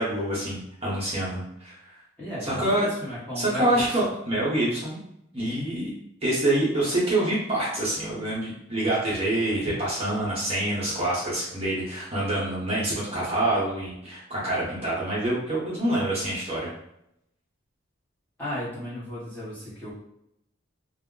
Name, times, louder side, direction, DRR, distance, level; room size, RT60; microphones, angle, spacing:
voice 1, 0.0-1.8 2.4-2.9 3.4-5.0 5.3-5.9 6.2-16.7, right 1 dB, 30° right, -7 dB, 0.8 m, -26 dB
voice 2, 2.2-3.8 18.4-19.9, equal, 10° left, -10 dB, 0.9 m, -34 dB
2.2 x 2.0 x 3.7 m, 0.79 s
head